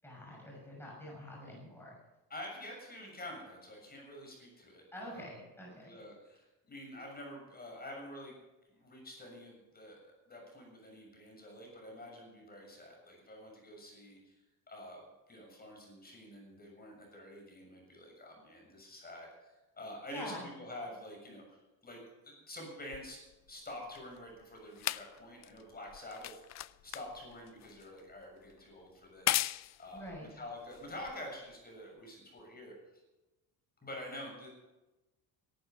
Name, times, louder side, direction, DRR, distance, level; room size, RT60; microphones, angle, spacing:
voice 1, 0.0-1.9 4.9-6.0 20.1-20.5 29.9-30.3, equal, 5° left, -2 dB, 6.3 m, -46 dB
voice 2, 2.3-5.3 5.7-8.4 8.7-10.0 10.3-14.4 14.7-21.6 21.8-23.2 23.5-32.7 33.8-34.5, left 1 dB, 25° left, 0 dB, 6.8 m, -48 dB
sound 1, 22.9-31.5 32.4-32.5, left 14 dB, 45° left, 0.5 m, -39 dB
18.0 x 12.0 x 5.4 m, 1.0 s
cardioid pair, 105°, 38 cm